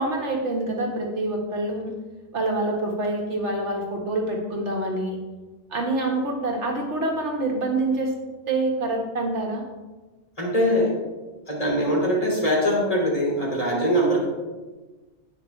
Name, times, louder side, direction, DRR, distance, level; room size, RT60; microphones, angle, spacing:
voice 1, 0.0-1.9 2.3-5.2 5.7-8.1 8.5-9.6, right 2 dB, 85° right, 0 dB, 2.0 m, -26 dB
voice 2, 10.4-10.9 11.5-14.3, equal, 30° left, -3 dB, 2.9 m, -22 dB
17.0 x 6.0 x 3.3 m, 1.2 s
omnidirectional pair, 1.2 m